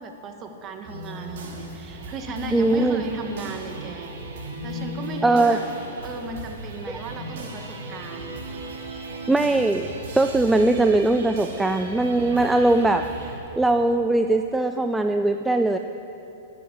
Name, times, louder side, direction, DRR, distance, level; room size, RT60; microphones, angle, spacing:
voice 1, 0.0-4.1 4.6-5.6 6.0-8.3, right 3 dB, 30° right, 4 dB, 1.6 m, -35 dB
sound 1, 0.8-13.4, right 1 dB, 65° right, 2.9 m, -37 dB
voice 2, 2.5-3.0 5.2-5.6 9.3-13.1 13.6-15.8, right 2 dB, 5° right, 6 dB, 0.4 m, -20 dB
13.0 x 10.5 x 7.0 m, 3.0 s
hypercardioid pair, 125°, 0 cm